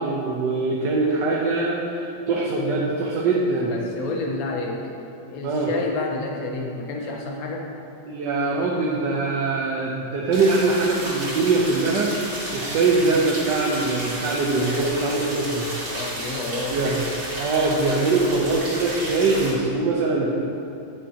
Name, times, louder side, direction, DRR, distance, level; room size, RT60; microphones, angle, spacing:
voice 1, 0.0-3.7 5.4-5.7 8.1-15.7 16.7-17.0 17.4-20.3, right 3 dB, 70° right, -3 dB, 1.5 m, -22 dB
voice 2, 3.7-4.9 5.3-7.7 15.8-17.0, left 2 dB, 55° left, 1 dB, 1.4 m, -30 dB
sound 1, 10.3-19.5, right 1 dB, 55° right, 2.7 m, -32 dB
10.0 x 9.9 x 2.9 m, 2.6 s
omnidirectional pair, 2.0 m